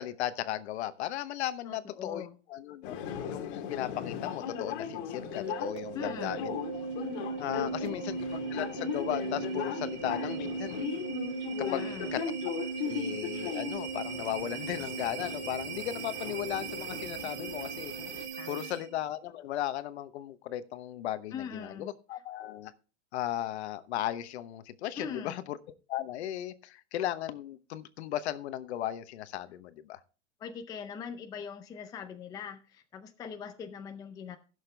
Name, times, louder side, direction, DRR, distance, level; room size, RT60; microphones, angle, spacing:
voice 1, 0.0-3.0 3.3-6.6 7.4-10.9 11.6-11.9 12.1-12.2 12.8-17.9 18.5-22.7 23.1-25.6 25.9-30.0, left 12 dB, 65° left, 13 dB, 1.0 m, -36 dB
voice 2, 1.6-2.3 5.9-6.4 7.6-8.2 11.7-12.1 18.4-18.7 21.3-21.9 25.0-25.4 30.4-34.4, left 7 dB, 10° left, 6 dB, 0.5 m, -42 dB
sound 1, 2.8-18.2, left 7 dB, 45° left, 1.8 m, -38 dB
sound 2, 5.1-19.0, right 5 dB, 50° right, 2.4 m, -38 dB
15.5 x 6.7 x 3.3 m, 0.35 s
supercardioid pair, 150°, 37 cm